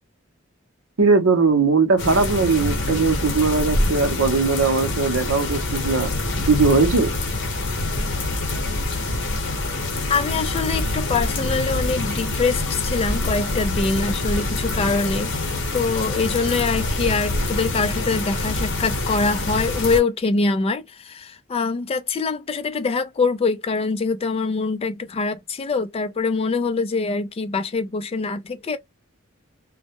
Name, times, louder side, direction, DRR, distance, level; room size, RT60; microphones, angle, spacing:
voice 1, 1.0-6.1 6.5-7.1, right 4 dB, 85° right, 0.7 m, -19 dB
sound 1, 2.0-20.0, left 2 dB, 55° left, 0.9 m, -25 dB
voice 2, 10.1-15.3 15.7-28.8, left 4 dB, 30° left, 0.4 m, -24 dB
2.2 x 2.0 x 2.8 m
head